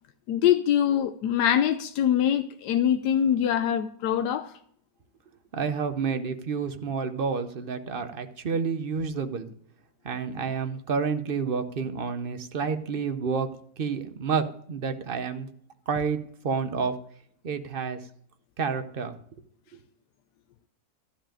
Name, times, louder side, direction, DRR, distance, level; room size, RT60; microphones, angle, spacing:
voice 1, 0.3-4.5, left 10 dB, 85° left, 1.3 m, -23 dB
voice 2, 5.5-9.5 10.0-13.5 13.8-15.5 15.9-16.2 16.4-16.9 17.4-18.0 18.6-19.1 19.7-19.8, right 5 dB, 45° right, 0.8 m, -29 dB
12.5 x 5.2 x 8.9 m
omnidirectional pair, 1.8 m